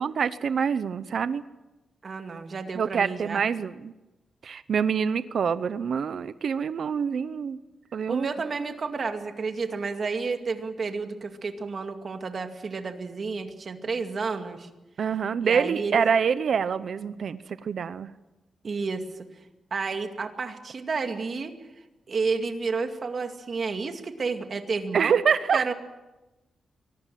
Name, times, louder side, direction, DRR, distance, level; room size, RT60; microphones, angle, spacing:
voice 1, 0.0-1.4 2.7-3.9 4.4-7.6 7.9-8.3 15.0-18.1 24.9-25.6, right 6 dB, 60° right, 13 dB, 0.8 m, -26 dB
voice 2, 2.0-3.4 8.1-14.7 15.4-16.1 18.6-19.3 19.7-21.6 22.1-25.2 25.5-25.7, right 4 dB, 45° right, 6 dB, 2.1 m, -31 dB
24.0 x 19.0 x 7.6 m, 1.0 s
wide cardioid pair, 140°, 0 cm